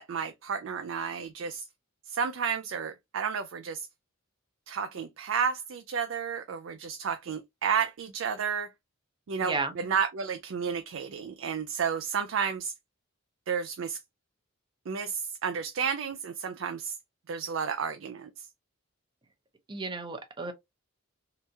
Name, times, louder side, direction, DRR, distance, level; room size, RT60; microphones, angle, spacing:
voice 1, 0.0-1.6 2.1-3.9 4.7-8.7 9.3-12.7 13.5-14.0 14.9-17.0 17.3-18.5, right 6 dB, 65° right, 0.4 m, -32 dB
voice 2, 9.4-9.7 19.7-20.5, right 3 dB, 25° right, 0.6 m, -33 dB
3.4 x 2.9 x 2.6 m
head